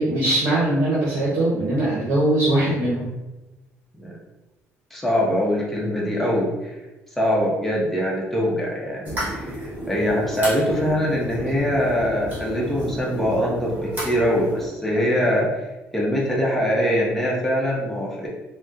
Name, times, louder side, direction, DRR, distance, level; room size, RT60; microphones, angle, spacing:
voice 1, 0.0-3.1, right 1 dB, 75° right, -6 dB, 0.8 m, -21 dB
voice 2, 4.9-6.8 7.2-15.7 15.9-18.3, equal, 5° left, -5 dB, 0.8 m, -23 dB
sound 1, 9.0-14.7, equal, 35° right, 1.2 m, -32 dB
4.1 x 2.1 x 2.4 m, 1.1 s
cardioid pair, 130°, 5 cm